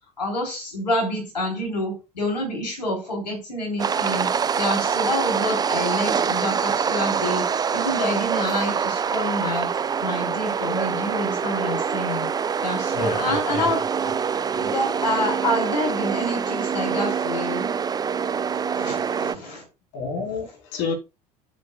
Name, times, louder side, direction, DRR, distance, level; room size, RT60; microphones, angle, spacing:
voice 1, 0.2-4.3 4.6-7.4 7.7-9.7 10.0-12.3 12.6-13.8 14.5-17.8 18.5-19.6, left 1 dB, 85° left, 3.4 m, -27 dB
sound 1, 3.8-19.4, right 6 dB, 20° right, 0.5 m, -25 dB
voice 2, 12.9-13.7 14.5-14.7 19.9-20.9, left 5 dB, 55° left, 4.1 m, -30 dB
9.5 x 9.4 x 2.3 m
figure-of-eight pair, 65°, 21 cm